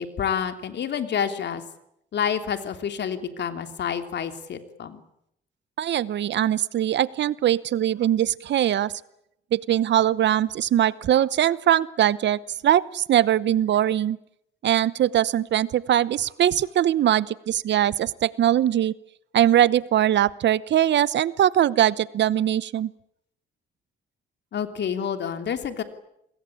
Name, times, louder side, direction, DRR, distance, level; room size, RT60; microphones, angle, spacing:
voice 1, 0.0-1.6 2.1-5.0 24.5-25.8, left 8 dB, 60° left, 7 dB, 3.2 m, -28 dB
voice 2, 5.8-8.9 9.5-14.2 14.6-18.9 19.3-22.9, right 11 dB, 65° right, 18 dB, 0.9 m, -21 dB
27.5 x 21.5 x 8.7 m, 0.78 s
cardioid pair, 90°, 20 cm